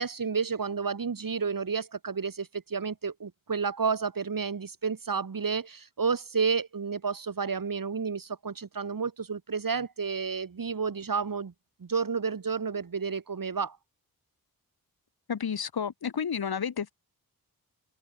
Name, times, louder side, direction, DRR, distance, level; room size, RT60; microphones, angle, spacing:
voice 1, 0.0-11.5 11.8-13.8, right 5 dB, 65° right, 6.5 m, -31 dB
voice 2, 15.3-16.9, left 7 dB, 90° left, 2.6 m, -31 dB
wide cardioid pair, 125°, 36 cm